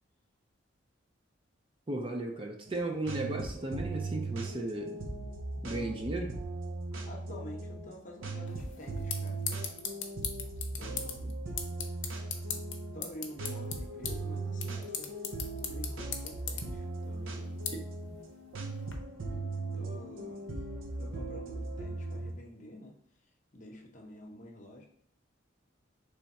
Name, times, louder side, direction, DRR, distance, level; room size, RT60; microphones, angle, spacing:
voice 1, 1.9-5.1 5.6-6.4 17.7-17.8, right 2 dB, 25° right, 2 dB, 0.5 m, -35 dB
sound 1, 2.7-22.3, right 2 dB, 85° right, 0.7 m, -38 dB
voice 2, 7.1-9.4 10.8-11.4 12.4-12.7 12.9-15.1 15.7-17.7 19.3-20.6 21.0-22.9 23.5-24.9, left 1 dB, 40° left, 1 dB, 0.8 m, -49 dB
sound 2, 8.5-18.9, left 7 dB, 75° left, 0.7 m, -41 dB
3.4 x 3.4 x 4.1 m, 0.64 s
head